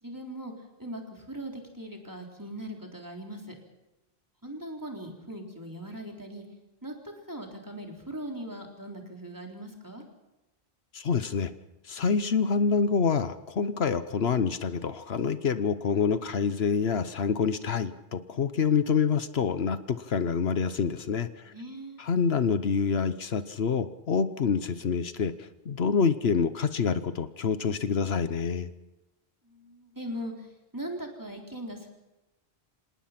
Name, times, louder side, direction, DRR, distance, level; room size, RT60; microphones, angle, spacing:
voice 1, 0.0-0.5 0.8-3.5 4.4-6.4 6.8-6.9 7.3-10.0 21.5-22.0 29.4-31.9, right 1 dB, 20° right, 1 dB, 3.9 m, -40 dB
voice 2, 10.9-11.5 11.9-21.5 22.0-28.7, left 6 dB, 75° left, 12 dB, 1.2 m, -27 dB
27.0 x 19.0 x 5.9 m, 1.0 s
omnidirectional pair, 1.1 m